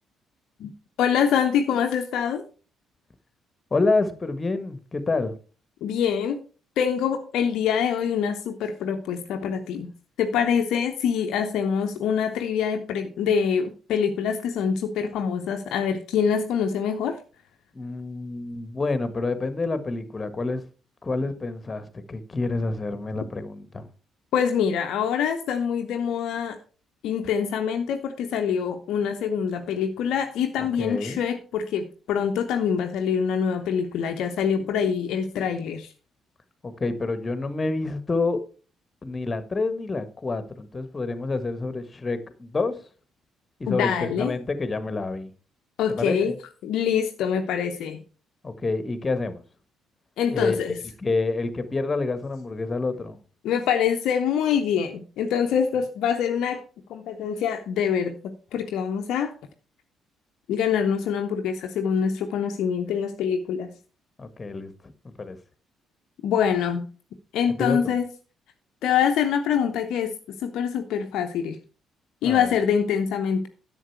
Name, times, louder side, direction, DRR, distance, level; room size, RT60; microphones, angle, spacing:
voice 1, 1.0-2.4 5.8-6.4 6.8-9.9 10.2-17.2 24.3-26.6 27.0-35.9 43.7-44.3 45.8-46.3 46.6-48.0 50.2-50.8 53.4-56.6 56.9-59.3 60.5-63.7 66.2-66.9 67.3-68.1 68.8-70.1 70.4-71.6 72.2-73.5, left 7 dB, 60° left, 0.8 m, -25 dB
voice 2, 3.7-5.4 17.7-20.6 21.0-23.9 30.6-31.2 36.6-38.4 39.0-42.8 43.6-45.3 45.9-46.3 48.4-49.4 50.3-50.6 51.0-53.2 64.2-64.7 65.0-65.4 67.5-67.9 72.2-72.5, left 3 dB, 25° left, 1.4 m, -28 dB
11.0 x 7.3 x 4.6 m
figure-of-eight pair, 45°, 0 cm